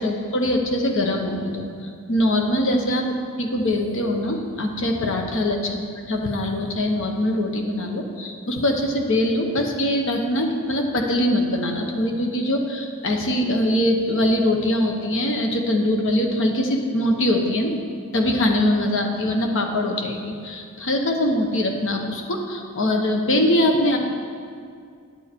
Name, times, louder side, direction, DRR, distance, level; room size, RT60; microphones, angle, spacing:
voice 1, 0.0-1.7 2.1-3.1 3.4-5.8 6.1-17.8 18.1-24.0, left 1 dB, 60° left, 3 dB, 1.0 m, -22 dB
9.8 x 7.1 x 4.4 m, 2.3 s
head